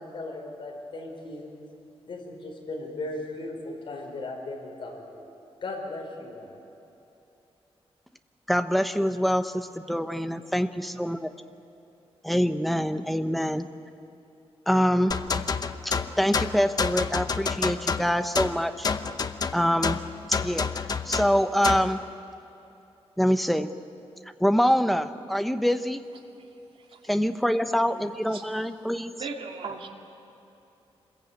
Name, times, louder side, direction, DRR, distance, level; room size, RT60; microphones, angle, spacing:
voice 1, 0.0-1.5 2.1-5.2 5.6-6.6, left 2 dB, 55° left, 0 dB, 5.0 m, -37 dB
voice 2, 8.5-11.3 12.2-13.7 14.7-15.2 15.8-18.9 19.5-20.0 20.3-20.7 21.0-22.0 23.2-23.7 24.4-26.1 27.1-29.1, equal, ahead, 8 dB, 0.8 m, -25 dB
sound 1, 15.1-21.9, left 5 dB, 40° left, 0.8 m, -29 dB
voice 3, 26.4-27.1 28.3-28.4 29.1-29.9, right 4 dB, 60° right, 2 dB, 2.5 m, -39 dB
26.5 x 21.5 x 8.9 m, 2.8 s
wide cardioid pair, 165°, 10 cm